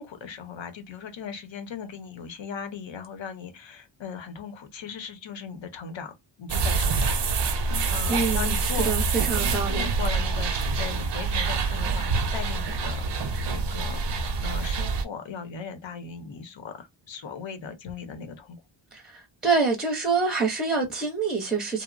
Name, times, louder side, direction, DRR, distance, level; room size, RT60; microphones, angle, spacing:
voice 1, 0.0-6.1 6.4-8.9 9.7-18.6, left 6 dB, 75° left, 0.7 m, -38 dB
sound 1, 6.5-15.0, right 4 dB, 65° right, 0.5 m, -26 dB
voice 2, 8.1-9.9 18.9-21.8, right 4 dB, ahead, 0.6 m, -26 dB
2.8 x 2.0 x 2.4 m
wide cardioid pair, 135°, 46 cm